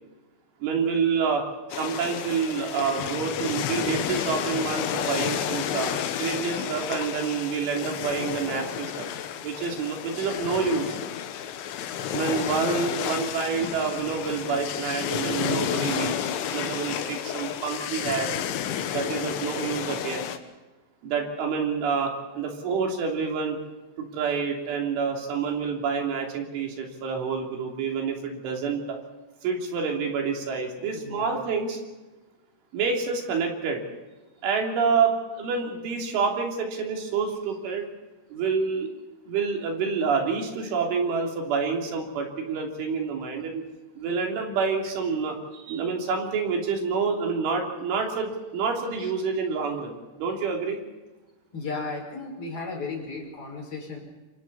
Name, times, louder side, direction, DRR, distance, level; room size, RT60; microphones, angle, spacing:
voice 1, 0.6-1.4 1.8-9.1 9.4-11.0 12.1-18.3 18.9-20.3 21.0-23.6 24.0-29.0 29.4-31.8 32.7-33.8 34.4-37.9 38.3-38.9 39.3-43.7 44.0-50.8, right 5 dB, 90° right, 1 dB, 5.7 m, -28 dB
sound 1, 1.7-20.4, left 9 dB, 85° left, 3.7 m, -31 dB
voice 2, 30.9-31.4 49.0-49.1 51.5-54.0, left 3 dB, 30° left, 0 dB, 6.4 m, -35 dB
28.0 x 25.5 x 4.2 m, 1.2 s
omnidirectional pair, 5.3 m